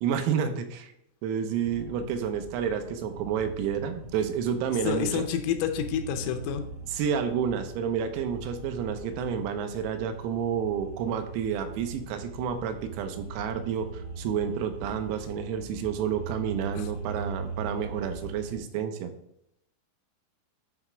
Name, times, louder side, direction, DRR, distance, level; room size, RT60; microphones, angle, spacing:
voice 1, 0.0-0.9 1.2-5.3 6.9-19.1, right 7 dB, 85° right, 7 dB, 3.5 m, -30 dB
sound 1, 1.6-18.6, right 3 dB, 60° right, 1.6 m, -41 dB
voice 2, 4.9-6.7 16.8-16.9, left 8 dB, 80° left, 6 dB, 3.1 m, -29 dB
9.4 x 3.3 x 5.9 m, 0.78 s
omnidirectional pair, 6.0 m